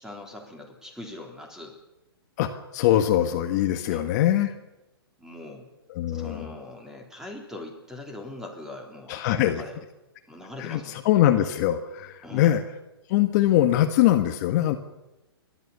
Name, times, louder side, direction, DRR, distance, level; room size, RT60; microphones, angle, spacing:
voice 1, 0.0-1.8 3.8-4.0 5.2-5.7 6.1-9.8 10.3-11.0 12.2-12.6, left 2 dB, 5° right, 2 dB, 3.8 m, -41 dB
voice 2, 2.4-4.5 5.9-6.5 9.1-9.6 10.6-12.6 13.1-14.8, left 12 dB, 45° left, 6 dB, 1.6 m, -22 dB
30.0 x 12.5 x 6.9 m, 1.0 s
hypercardioid pair, 135°, 13 cm